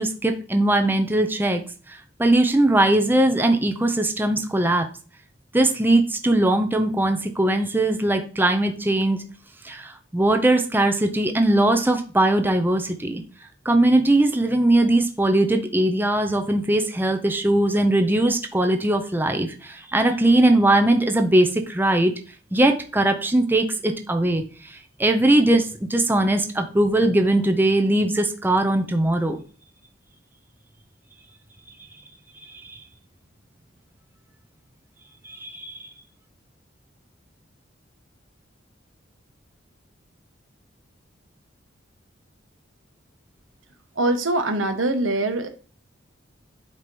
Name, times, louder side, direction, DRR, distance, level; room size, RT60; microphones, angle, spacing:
voice 1, 0.0-1.6 2.2-4.9 5.5-9.2 9.6-13.2 13.6-22.1 22.5-24.4 24.7-29.4 35.3-35.7, right 1 dB, 10° right, 5 dB, 0.6 m, -20 dB
voice 2, 44.0-45.5, right 2 dB, 85° right, 6 dB, 1.1 m, -23 dB
8.1 x 3.0 x 5.3 m, 0.38 s
head